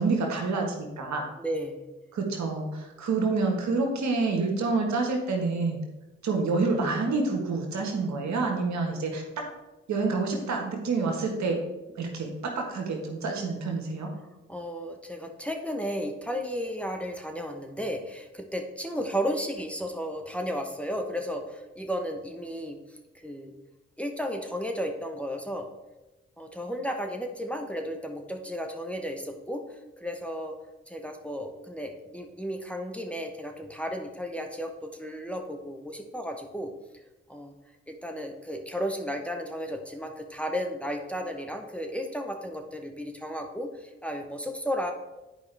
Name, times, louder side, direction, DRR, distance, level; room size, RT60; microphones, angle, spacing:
voice 1, 0.0-1.2 2.1-5.8 6.2-9.5 9.9-11.6 12.0-14.1, right 3 dB, 65° right, 2 dB, 1.5 m, -28 dB
voice 2, 1.4-1.8 14.5-22.8 23.2-23.5 24.0-25.7 26.4-29.6 30.0-30.5 30.9-36.7 37.3-37.5 37.9-44.9, equal, 5° left, 3 dB, 1.1 m, -33 dB
9.1 x 4.9 x 3.4 m, 1.0 s
hypercardioid pair, 40°, 30 cm